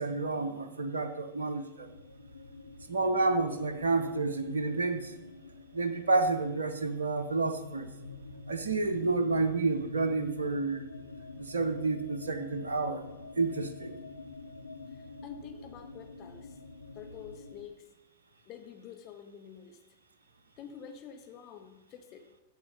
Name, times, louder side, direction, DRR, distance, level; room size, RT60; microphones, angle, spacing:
voice 1, 0.0-1.9 2.9-5.1 5.7-7.9 8.5-10.8 11.4-13.0 13.4-14.0, right 3 dB, 70° right, 7 dB, 0.7 m, -30 dB
sound 1, 1.8-17.7, left 3 dB, 85° left, 0.6 m, -47 dB
voice 2, 15.2-16.5 16.9-17.9 18.5-19.8 20.6-22.3, left 8 dB, 35° left, 6 dB, 1.0 m, -47 dB
7.4 x 7.1 x 6.5 m, 1.0 s
figure-of-eight pair, 90°, 0 cm